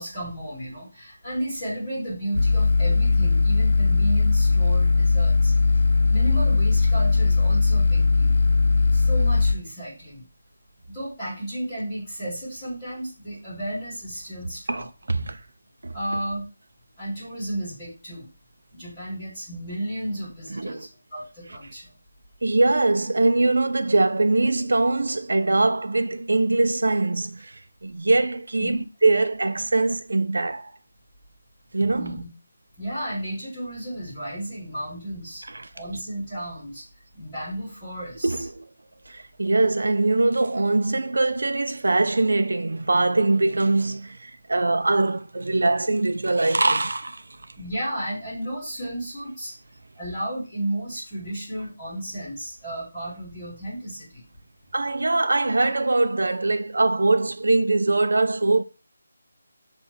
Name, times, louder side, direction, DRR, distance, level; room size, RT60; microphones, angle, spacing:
voice 1, 0.0-5.5 6.1-8.3 8.9-10.2 10.9-14.8 15.9-16.4 17.0-18.3 18.7-20.9 21.1-21.9 28.6-28.9 31.9-32.2 32.8-35.4 35.7-36.8 37.1-38.3 47.6-49.5 50.0-54.2, right 1 dB, 15° left, 2.9 m, -33 dB
sound 1, 2.3-9.5, left 4 dB, 70° left, 0.7 m, -19 dB
voice 2, 14.7-15.4 15.8-16.0 20.5-20.9 22.4-30.7 31.7-32.2 35.5-35.7 38.2-38.7 39.1-47.2 54.7-58.6, right 2 dB, 70° right, 0.7 m, -22 dB
6.8 x 3.5 x 4.4 m
figure-of-eight pair, 180°, 0 cm